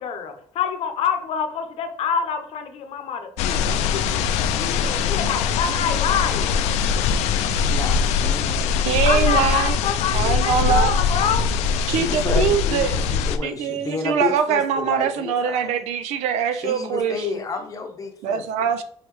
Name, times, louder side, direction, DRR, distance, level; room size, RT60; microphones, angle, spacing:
voice 1, 0.0-3.6 3.9-6.6 9.1-11.5, left 7 dB, 60° left, 0.8 m, -26 dB
sound 1, 3.4-13.4, left 6 dB, 80° left, 0.4 m, -22 dB
voice 2, 7.6-8.9 11.9-15.7 16.5-18.7, left 5 dB, 30° left, 0.9 m, -31 dB
voice 3, 8.8-9.8 10.1-11.0 11.9-13.0 13.4-17.2 18.2-18.8, right 8 dB, 80° right, 0.5 m, -23 dB
4.7 x 3.3 x 3.1 m
cardioid pair, 95°, 11 cm